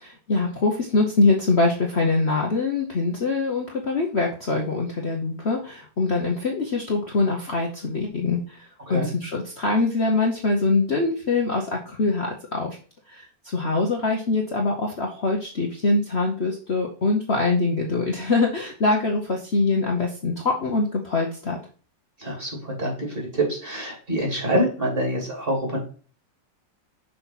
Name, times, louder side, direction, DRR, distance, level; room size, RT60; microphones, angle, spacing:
voice 1, 0.0-12.8 13.1-21.6, left 3 dB, 40° left, 0 dB, 1.1 m, -24 dB
voice 2, 22.2-25.8, right 1 dB, 30° right, 0 dB, 2.9 m, -26 dB
6.4 x 4.2 x 5.8 m, 0.39 s
omnidirectional pair, 2.0 m